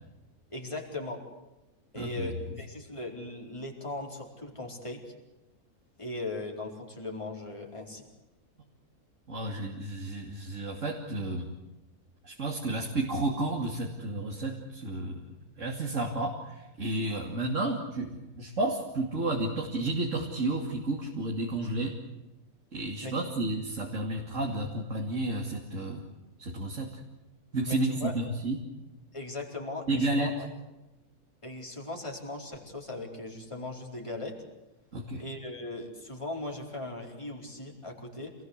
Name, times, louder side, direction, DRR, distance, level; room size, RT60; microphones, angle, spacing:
voice 1, 0.5-1.2 1.9-5.1 6.0-8.1 23.0-23.1 27.6-28.2 29.1-30.5 31.4-34.4 35.2-38.3, left 2 dB, 20° left, 0 dB, 4.5 m, -38 dB
voice 2, 1.9-2.3 9.3-11.5 12.2-22.0 22.7-26.0 26.4-26.9 27.5-28.6 29.9-30.3 34.9-35.2, right 2 dB, 55° right, 0 dB, 2.9 m, -32 dB
28.0 x 19.5 x 8.2 m, 1.0 s
omnidirectional pair, 1.6 m